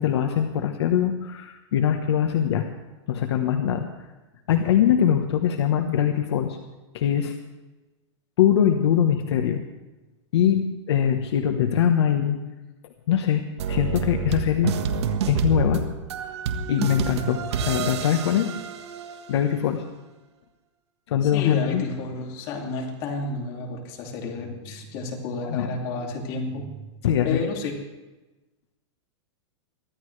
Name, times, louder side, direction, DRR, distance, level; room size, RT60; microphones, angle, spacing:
voice 1, 0.0-2.7 3.1-3.9 4.5-6.6 6.9-7.3 8.4-9.6 10.3-12.4 13.1-14.7 15.3-15.8 16.7-17.4 17.7-18.5 19.3-19.8 21.1-21.8 25.4-25.7 27.0-27.4, left 9 dB, 65° left, 5 dB, 1.2 m, -22 dB
sound 1, 13.6-19.4, right 5 dB, 65° right, 1.5 m, -28 dB
voice 2, 21.2-26.8 27.2-27.8, left 3 dB, 30° left, 1 dB, 2.6 m, -31 dB
23.0 x 14.5 x 3.3 m, 1.1 s
supercardioid pair, 170°, 15 cm